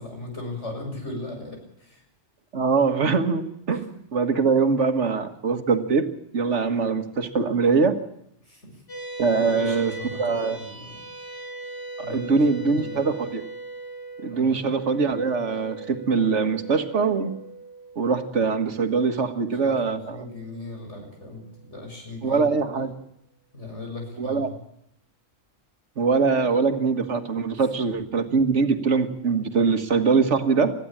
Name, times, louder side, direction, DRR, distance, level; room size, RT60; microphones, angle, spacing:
voice 1, 0.0-2.0 3.7-3.8 8.5-8.8 9.5-11.1 12.0-13.1 14.3-14.6 19.5-22.9 23.5-24.6, left 2 dB, 80° left, 2 dB, 7.2 m, -38 dB
voice 2, 2.5-6.1 6.3-8.0 9.2-9.9 10.2-10.6 12.1-13.4 14.2-17.3 18.0-20.2 22.2-22.9 24.2-24.5 26.0-30.7, right 4 dB, 85° right, 9 dB, 1.9 m, -23 dB
sound 1, 8.9-21.5, right 2 dB, 60° left, 7.3 m, -40 dB
21.5 x 15.0 x 8.7 m, 0.76 s
omnidirectional pair, 1.2 m